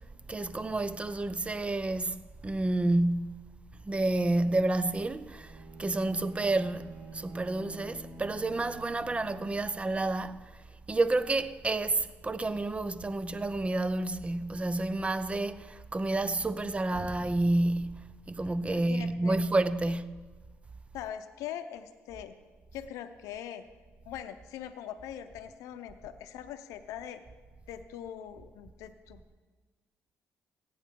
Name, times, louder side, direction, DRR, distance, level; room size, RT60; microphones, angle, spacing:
voice 1, 0.3-3.4 3.8-10.5 10.9-20.2, right 2 dB, 20° right, 0.6 m, -30 dB
Bowed string instrument, 5.3-10.1, right 2 dB, 65° right, 2.4 m, -48 dB
voice 2, 18.7-19.4 20.9-22.3 22.7-23.7 24.1-27.2 27.7-29.2, left 10 dB, 90° left, 0.6 m, -42 dB
16.5 x 8.5 x 3.7 m
cardioid pair, 75°, 5 cm